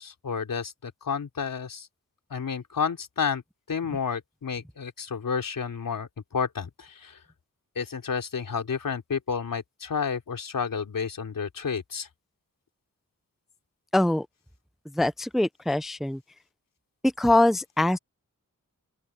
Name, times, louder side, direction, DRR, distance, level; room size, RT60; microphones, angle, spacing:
voice 1, 0.0-1.9 2.3-3.4 3.7-7.2 7.8-12.1, left 6 dB, 85° left, 3.9 m, -31 dB
voice 2, 13.9-14.3 14.9-16.2 17.0-18.0, left 1 dB, ahead, 0.5 m, -23 dB
open air
wide cardioid pair, 145°, 32 cm